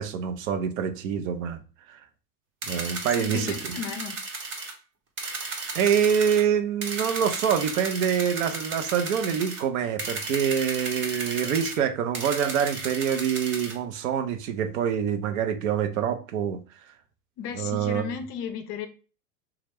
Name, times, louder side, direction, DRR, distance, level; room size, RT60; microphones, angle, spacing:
voice 1, 0.0-1.6 1.9-2.0 2.7-3.8 5.7-16.6 17.6-18.0, right 8 dB, 65° right, 0.7 m, -26 dB
sound 1, 2.6-4.7 5.2-6.4 6.8-9.6 10.0-11.8 12.1-13.7, right 3 dB, 25° right, 0.9 m, -34 dB
voice 2, 3.2-4.2 17.4-18.9, left 7 dB, 40° left, 0.5 m, -34 dB
3.0 x 2.4 x 3.3 m
hypercardioid pair, 115°, 43 cm